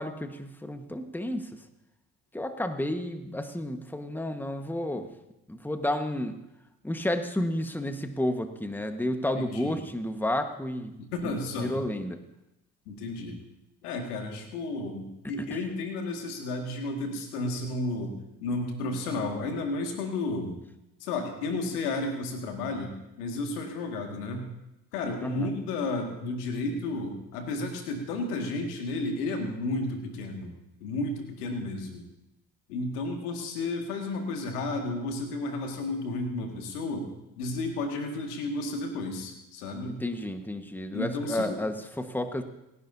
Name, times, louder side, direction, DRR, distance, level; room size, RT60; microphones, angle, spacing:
voice 1, 0.0-1.6 2.3-5.1 5.5-6.4 6.8-10.9 11.2-12.2 15.2-15.6 25.2-25.5 39.9-42.4, left 1 dB, 5° left, 7 dB, 1.5 m, -31 dB
voice 2, 9.4-9.7 11.0-11.7 12.9-13.4 13.8-20.6 21.0-22.9 23.2-24.5 24.9-30.5 30.8-32.0 32.7-40.0 40.9-41.6, left 2 dB, 80° left, 3 dB, 2.1 m, -32 dB
28.0 x 11.0 x 2.8 m, 0.90 s
hypercardioid pair, 50°, 45 cm